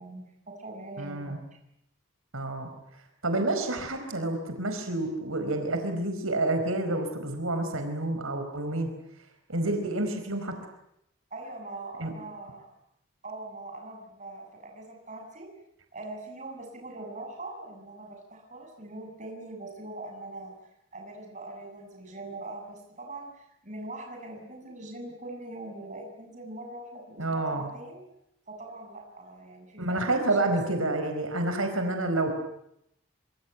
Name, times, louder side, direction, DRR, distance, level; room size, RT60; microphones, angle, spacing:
voice 1, 0.0-1.4 11.3-12.7 13.2-15.5 15.9-20.5 20.9-28.1 28.5-30.1 30.4-30.6, right 2 dB, 35° right, 2 dB, 7.5 m, -42 dB
voice 2, 1.0-1.4 2.3-2.7 3.2-8.9 9.5-10.5 12.0-12.1 27.2-27.7 29.8-32.3, right 2 dB, 90° right, 6 dB, 4.7 m, -29 dB
26.0 x 24.5 x 9.3 m, 0.78 s
head